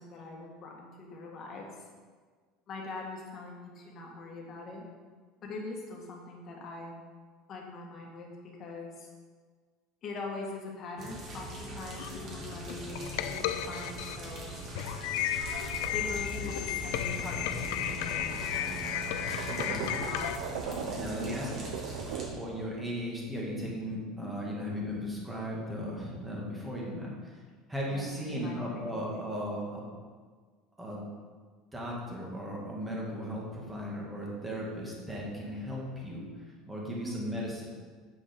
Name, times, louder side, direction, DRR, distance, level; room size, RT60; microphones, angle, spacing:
voice 1, 0.0-1.9 2.7-4.8 5.4-7.0 7.5-9.1 10.0-14.7 15.8-18.8 19.7-21.0 24.2-24.4 27.9-28.7 29.0-29.3 34.1-34.3 37.0-37.2, left 3 dB, 35° left, -1 dB, 1.7 m, -43 dB
sound 1, 11.0-22.3, right 2 dB, 35° right, 1.9 m, -42 dB
sound 2, 12.0-20.4, left 11 dB, 75° left, 0.5 m, -34 dB
sound 3, 15.3-22.5, right 7 dB, 85° right, 0.8 m, -41 dB
voice 2, 19.5-19.8 20.9-21.7 22.4-27.4 27.7-29.8 30.8-31.1 31.7-36.3 36.7-37.6, equal, 10° right, -3 dB, 1.9 m, -36 dB
8.5 x 5.4 x 5.2 m, 1.5 s
cardioid pair, 150°, 0 cm